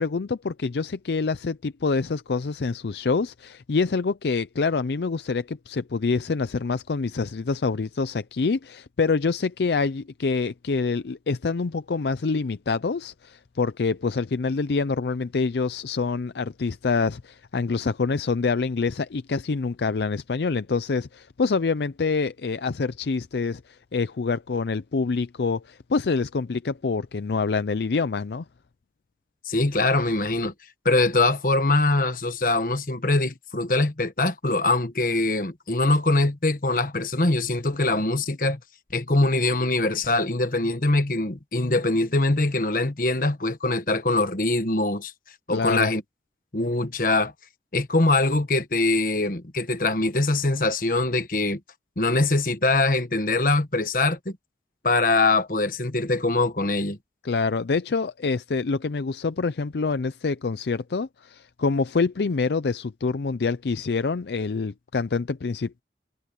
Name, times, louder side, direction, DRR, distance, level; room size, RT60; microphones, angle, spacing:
voice 1, 0.0-28.4 45.5-45.9 57.2-65.8, left 4 dB, 70° left, 0.5 m, -26 dB
voice 2, 29.4-30.5 30.8-38.6 38.9-45.1 45.5-46.0 46.5-47.3 47.7-51.6 52.0-54.4 54.8-57.0, left 2 dB, 50° left, 1.4 m, -23 dB
head